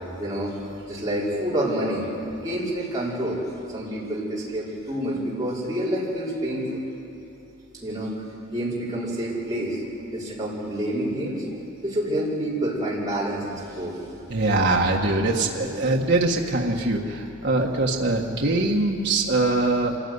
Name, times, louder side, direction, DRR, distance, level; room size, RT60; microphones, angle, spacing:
voice 1, 0.2-3.4 3.7-6.8 7.7-8.1 8.5-9.8 10.1-11.4 11.8-14.0 15.4-15.7, right 1 dB, 15° right, -7 dB, 5.3 m, -28 dB
voice 2, 14.3-19.9, right 2 dB, 55° right, -1 dB, 1.6 m, -22 dB
26.0 x 15.5 x 9.6 m, 2.8 s
head